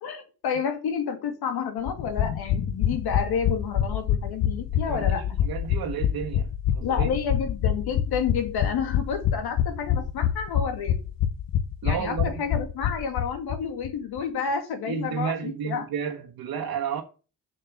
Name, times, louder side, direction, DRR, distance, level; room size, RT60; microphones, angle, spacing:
voice 1, 0.0-5.4 6.8-11.0 11.8-15.9 16.6-16.7, left 6 dB, 85° left, 2.3 m, -30 dB
sound 1, 1.9-13.6 13.8-13.9 14.2-14.3, left 10 dB, 65° left, 0.9 m, -26 dB
voice 2, 4.7-7.1 11.8-12.4 14.9-17.0, right 8 dB, 70° right, 1.4 m, -32 dB
7.2 x 6.4 x 7.0 m
cardioid pair, 160°, 37 cm